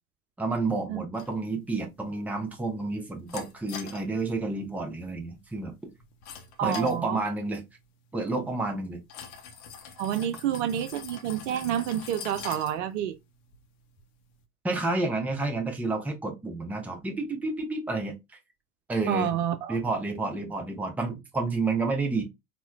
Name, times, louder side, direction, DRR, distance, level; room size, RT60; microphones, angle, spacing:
voice 1, 0.4-5.7 6.6-7.6 8.1-9.0 14.6-18.2 18.9-19.3 19.7-22.2, right 3 dB, 5° right, 0.6 m, -30 dB
sound 1, 1.1-14.4, left 7 dB, 40° left, 0.7 m, -47 dB
voice 2, 6.6-7.2 10.0-13.2 19.1-19.8, right 10 dB, 60° right, 0.5 m, -29 dB
4.2 x 2.1 x 2.4 m
figure-of-eight pair, 75°, 43 cm